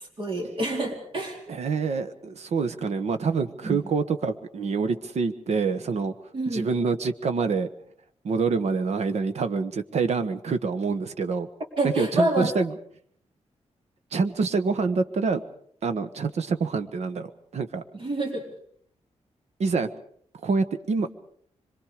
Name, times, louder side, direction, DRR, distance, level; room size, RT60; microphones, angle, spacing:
voice 1, 0.2-1.4 3.6-3.8 6.3-6.7 11.8-12.5 17.9-18.4, right 1 dB, 45° right, 1 dB, 4.2 m, -27 dB
voice 2, 1.5-6.1 6.5-7.7 8.2-11.5 11.8-12.8 14.1-15.4 15.8-17.8 19.6-19.9 20.4-21.1, right 4 dB, 70° right, 10 dB, 1.3 m, -26 dB
25.5 x 23.0 x 5.1 m, 0.63 s
wide cardioid pair, 175°, 12 cm